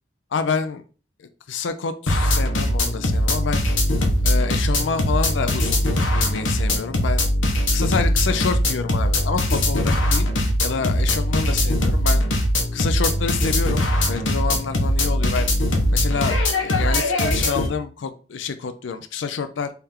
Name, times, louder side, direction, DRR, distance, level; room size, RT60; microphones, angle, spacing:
voice 1, 0.3-0.8 1.2-3.6 4.2-5.8 6.1-7.2 7.7-10.3 10.6-12.2 12.7-15.5 15.9-19.7, left 5 dB, 70° left, 9 dB, 0.5 m, -28 dB
sound 1, 2.1-17.7, left 1 dB, 90° left, 1.1 m, -21 dB
4.3 x 3.4 x 3.6 m, 0.37 s
head